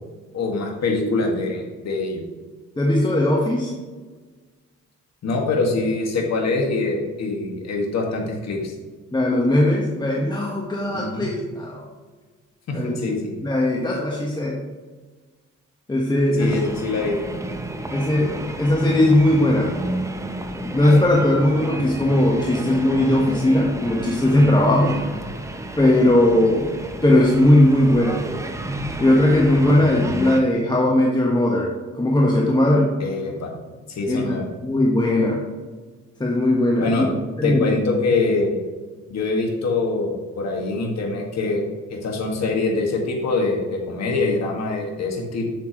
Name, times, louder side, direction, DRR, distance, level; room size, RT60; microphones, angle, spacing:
voice 1, 0.3-2.2 5.2-8.7 10.9-11.3 12.7-13.4 16.3-17.2 24.9-25.0 33.0-33.6 33.9-34.5 36.8-37.1 37.4-38.6 39.1-45.4, left 3 dB, 60° left, 0 dB, 1.9 m, -24 dB
voice 2, 2.8-3.7 9.1-11.9 12.7-13.0 13.4-14.6 15.9-16.5 17.9-19.7 20.7-24.9 25.8-26.7 27.0-28.2 29.0-31.7 31.9-32.9 34.1-35.4 36.2-37.1 37.4-37.7, left 1 dB, 15° left, -2 dB, 1.3 m, -18 dB
sound 1, 16.4-30.4, right 1 dB, 10° right, 0.8 m, -31 dB
7.6 x 7.1 x 3.1 m, 1.4 s
cardioid pair, 90°, 30 cm